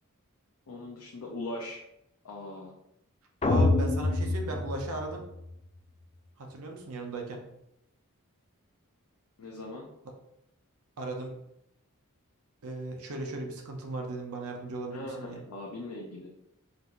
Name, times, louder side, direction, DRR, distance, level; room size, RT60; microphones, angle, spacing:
voice 1, 0.7-1.8 2.2-2.7 9.4-9.9 14.9-16.3, left 2 dB, 85° left, -3 dB, 0.7 m, -40 dB
sound 1, 3.4-5.5, left 2 dB, 25° left, 0.3 m, -26 dB
voice 2, 3.4-5.2 6.4-7.4 11.0-11.3 12.6-15.4, right 2 dB, 70° right, 2 dB, 0.7 m, -37 dB
5.4 x 2.6 x 2.9 m, 0.81 s
head